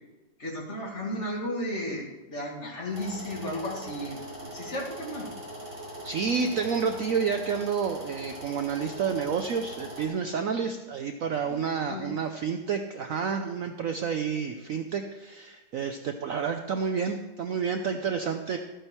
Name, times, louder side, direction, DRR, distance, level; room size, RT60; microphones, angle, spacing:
voice 1, 0.4-4.2 4.5-5.3 11.5-12.1, left 1 dB, 40° left, -1 dB, 2.3 m, -34 dB
sound 1, 2.9-10.1, right 1 dB, 40° right, 3.7 m, -41 dB
voice 2, 6.0-18.6, right 6 dB, 65° right, 6 dB, 0.9 m, -29 dB
13.5 x 8.8 x 4.4 m, 1.1 s
omnidirectional pair, 2.0 m